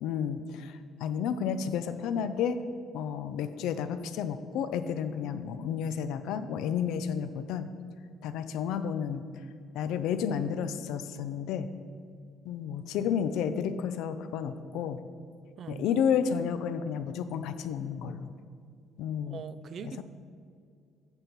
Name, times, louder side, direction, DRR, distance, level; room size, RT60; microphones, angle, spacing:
voice 1, 0.0-2.6 2.9-7.7 8.2-9.2 9.7-11.7 12.5-15.0 15.7-18.3 19.0-19.4 19.8-20.0, left 7 dB, 80° left, 11 dB, 0.4 m, -31 dB
voice 2, 15.6-15.9 19.3-20.0, right 7 dB, 50° right, 13 dB, 0.3 m, -41 dB
8.8 x 5.7 x 4.5 m, 2.2 s
cardioid pair, 110°, 0 cm